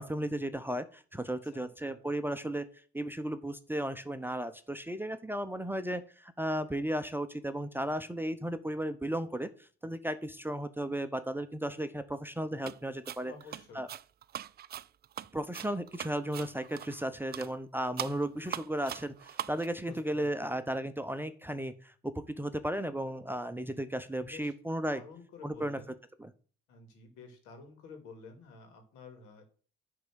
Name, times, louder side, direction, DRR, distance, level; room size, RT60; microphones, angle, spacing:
voice 1, 0.0-2.7 2.9-13.3 13.7-13.9 15.3-25.0 25.4-25.8 26.2-26.3, right 1 dB, 5° right, 10 dB, 0.7 m, -35 dB
voice 2, 1.2-2.0 13.3-13.9 19.9-20.5 24.3-24.5 24.9-25.9 26.7-29.5, left 4 dB, 75° left, 5 dB, 2.4 m, -51 dB
sound 1, 12.6-12.8 13.0-17.0 17.3-17.5 18.0-19.7, right 11 dB, 35° right, 0.4 m, -41 dB
9.6 x 3.8 x 6.2 m, 0.42 s
hypercardioid pair, 60°, 30 cm